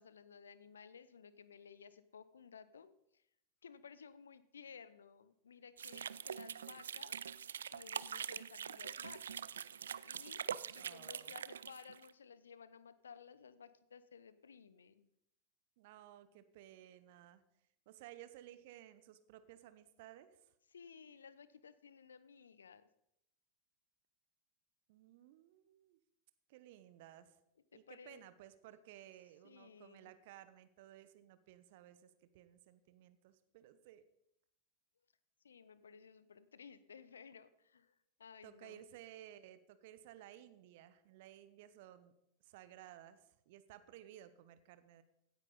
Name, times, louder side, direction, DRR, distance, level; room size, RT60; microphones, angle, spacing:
voice 1, 0.0-3.2 3.6-7.2 7.7-9.4 9.7-10.4 10.7-15.1 20.7-22.9 27.7-28.2 29.4-30.1 35.4-38.8, left 6 dB, 70° left, 15 dB, 0.7 m, -57 dB
sound 1, 5.8-12.1, right 8 dB, 65° right, 0.3 m, -44 dB
voice 2, 10.8-11.3 15.8-17.4 17.9-20.4 24.9-26.0 26.5-27.4 27.7-34.0 38.4-42.1 42.4-45.0, right 12 dB, 50° right, 13 dB, 0.9 m, -57 dB
16.5 x 9.7 x 4.0 m, 0.81 s
figure-of-eight pair, 90°, 0 cm